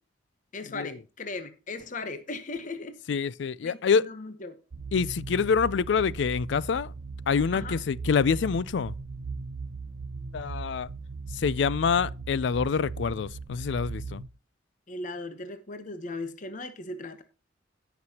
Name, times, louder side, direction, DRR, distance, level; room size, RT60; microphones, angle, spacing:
voice 1, 0.5-3.0 3.6-4.5 7.5-7.8 14.9-17.2, left 3 dB, 40° left, 0.9 m, -37 dB
voice 2, 3.1-4.1 4.9-6.9 7.3-8.9 10.3-10.9 11.3-14.2, left 6 dB, 65° left, 0.4 m, -26 dB
sound 1, 4.7-14.3, right 4 dB, 70° right, 0.6 m, -38 dB
17.0 x 6.1 x 2.8 m
head